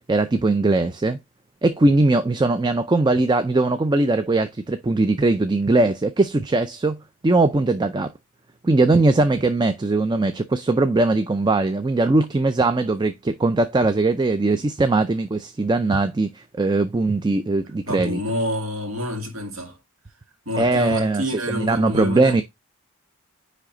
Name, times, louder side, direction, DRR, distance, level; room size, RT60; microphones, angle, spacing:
voice 1, 0.1-1.2 1.6-8.1 8.6-18.2 20.6-22.4, right 2 dB, 20° right, 0.4 m, -20 dB
voice 2, 17.9-19.8 20.5-22.4, left 1 dB, 70° right, 2.1 m, -28 dB
9.7 x 3.3 x 3.8 m
head